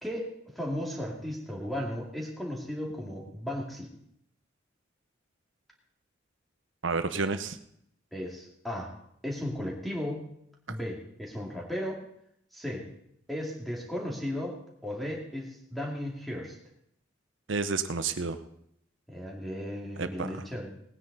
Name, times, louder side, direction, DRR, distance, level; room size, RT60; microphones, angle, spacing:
voice 1, 0.0-3.9 8.1-8.9 9.2-10.3 10.7-12.0 12.5-12.9 13.3-14.6 14.8-16.6 19.1-20.7, left 1 dB, ahead, -2 dB, 2.3 m, -35 dB
voice 2, 6.8-7.6 17.5-18.4 20.0-20.3, right 4 dB, 80° right, 11 dB, 0.8 m, -30 dB
19.0 x 9.7 x 4.1 m, 0.73 s
head